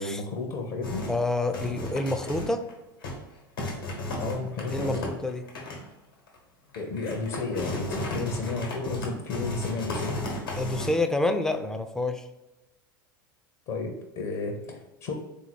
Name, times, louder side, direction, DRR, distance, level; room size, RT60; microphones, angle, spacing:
voice 1, 0.0-1.0 4.2-5.1 6.8-10.2 13.7-15.1, left 3 dB, 50° left, 2 dB, 0.8 m, -32 dB
sound 1, 0.8-1.2 1.5-2.7 3.0-3.2 3.6-5.9 6.3-6.4 6.7-10.9, left 1 dB, 80° left, 1.3 m, -34 dB
voice 2, 1.1-2.7 4.7-5.4 10.6-12.3, left 2 dB, 5° left, 7 dB, 0.4 m, -28 dB
3.7 x 2.8 x 4.5 m, 1.0 s
hypercardioid pair, 85°, 12 cm